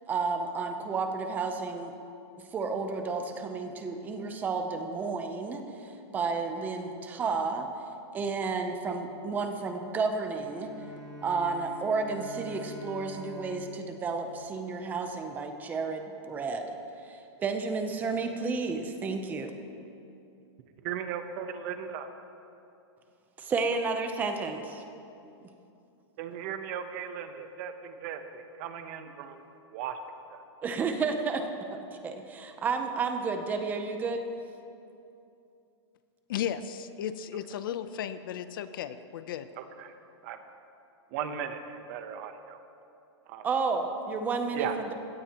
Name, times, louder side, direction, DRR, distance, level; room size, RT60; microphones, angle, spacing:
voice 1, 0.1-1.9 2.5-7.7 8.1-10.7 11.2-16.8 17.0-19.5 23.4-24.8 30.6-34.2 43.4-44.9, right 4 dB, 10° right, 6 dB, 0.7 m, -32 dB
Bowed string instrument, 10.5-15.4, left 2 dB, 5° left, 2.8 m, -46 dB
voice 2, 20.8-22.1 26.2-29.4 29.7-30.0 30.3-30.4 39.6-39.9 40.2-40.4 41.1-42.6 43.3-43.4 44.5-44.8, right 8 dB, 30° right, 8 dB, 0.9 m, -37 dB
voice 3, 36.3-39.5, left 9 dB, 50° left, 12 dB, 0.6 m, -35 dB
21.0 x 16.5 x 3.0 m, 2.7 s
supercardioid pair, 170°, 15 cm